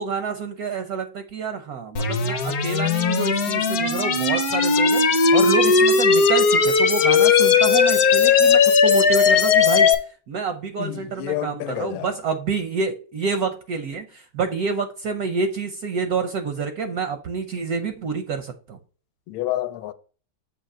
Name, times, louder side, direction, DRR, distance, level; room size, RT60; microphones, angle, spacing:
voice 1, 0.0-18.8, right 5 dB, 70° right, 0.9 m, -28 dB
sound 1, 2.0-10.0, left 5 dB, 55° left, 1.2 m, -17 dB
voice 2, 10.8-12.1 19.3-19.9, left 13 dB, 80° left, 1.3 m, -29 dB
7.3 x 2.9 x 5.4 m
omnidirectional pair, 2.3 m